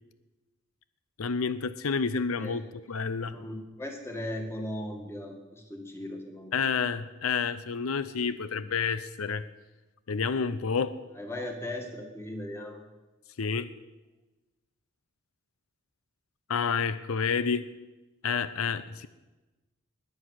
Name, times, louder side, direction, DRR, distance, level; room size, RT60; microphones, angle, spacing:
voice 1, 1.2-3.3 6.5-9.4 10.1-11.0 13.4-13.7 16.5-17.7 18.2-19.1, left 5 dB, 85° left, 14 dB, 0.6 m, -29 dB
voice 2, 2.4-2.7 3.3-6.7 11.2-12.9, left 1 dB, 10° left, 3 dB, 1.9 m, -38 dB
21.0 x 7.8 x 6.5 m, 1.1 s
head